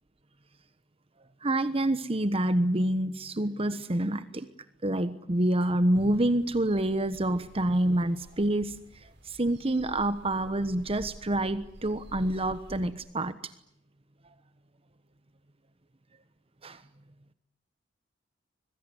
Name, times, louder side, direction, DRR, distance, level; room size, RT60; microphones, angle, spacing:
voice 1, 1.4-4.5 4.8-13.5 16.6-16.8, right 1 dB, 30° right, 12 dB, 1.2 m, -27 dB
Philadelphia suburb bird songs, 5.9-12.9, equal, 65° right, 7.5 m, -50 dB
25.0 x 23.0 x 9.9 m, 0.78 s
head